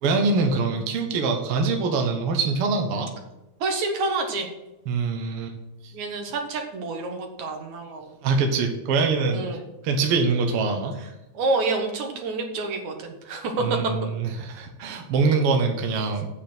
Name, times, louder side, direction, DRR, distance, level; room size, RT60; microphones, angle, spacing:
voice 1, 0.0-3.1 4.9-5.5 5.8-5.9 8.2-9.5 9.8-11.0 13.6-16.3, right 4 dB, 60° right, 3 dB, 1.9 m, -24 dB
voice 2, 3.6-4.5 5.9-8.1 9.3-9.6 11.3-13.9, right 3 dB, 75° right, 3 dB, 2.8 m, -28 dB
8.2 x 6.7 x 7.8 m, 0.97 s
omnidirectional pair, 3.4 m